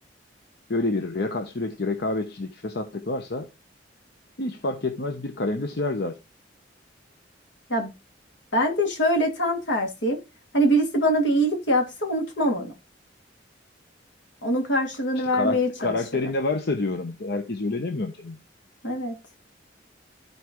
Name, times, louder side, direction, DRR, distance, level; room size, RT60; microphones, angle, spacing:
voice 1, 0.7-3.5 4.4-6.2 15.3-18.4, left 2 dB, 60° left, 0.9 m, -28 dB
voice 2, 8.5-10.2 10.5-12.7 14.4-16.3 18.8-19.2, equal, 80° left, 2.6 m, -24 dB
13.5 x 4.7 x 3.0 m
head